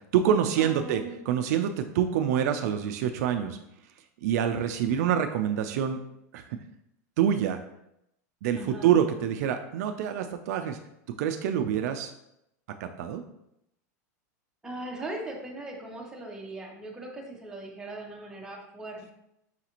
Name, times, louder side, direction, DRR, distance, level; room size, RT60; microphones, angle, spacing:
voice 1, 0.0-3.6 4.2-6.0 6.3-6.6 7.2-7.6 8.4-10.8 11.2-12.1 12.8-13.2, right 9 dB, 65° right, 7 dB, 0.3 m, -26 dB
voice 2, 0.6-1.2 8.6-8.9 14.6-19.1, right 2 dB, 5° right, -2 dB, 0.7 m, -39 dB
5.7 x 2.4 x 2.9 m, 0.81 s
supercardioid pair, 145°, 9 cm